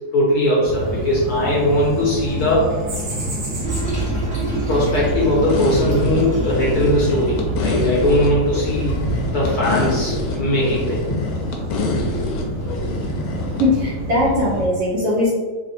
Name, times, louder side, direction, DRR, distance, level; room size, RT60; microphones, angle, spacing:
voice 1, 0.1-2.7 4.7-9.0 9.3-11.2, left 1 dB, 60° left, -5 dB, 1.1 m, -19 dB
sound 1, 0.6-14.7, right 1 dB, 40° right, 0.9 m, -28 dB
Toilet flush, 3.6-9.3, right 2 dB, 5° right, 0.5 m, -27 dB
sound 2, 5.5-13.7, left 2 dB, 90° left, 1.5 m, -26 dB
voice 2, 13.6-15.3, left 1 dB, 65° right, -6 dB, 1.1 m, -19 dB
3.6 x 2.1 x 4.1 m, 1.4 s
omnidirectional pair, 2.3 m